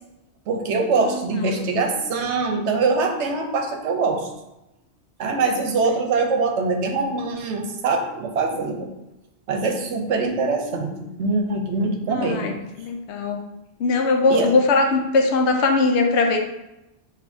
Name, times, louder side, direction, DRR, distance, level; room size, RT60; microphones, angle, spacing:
voice 1, 0.5-4.3 5.2-8.9 9.5-12.5 14.3-14.5, right 3 dB, 80° right, 3 dB, 1.0 m, -23 dB
voice 2, 1.1-1.5 12.1-13.4 13.8-16.4, left 3 dB, 75° left, 3 dB, 0.9 m, -20 dB
6.5 x 2.7 x 2.6 m, 0.92 s
omnidirectional pair, 1.2 m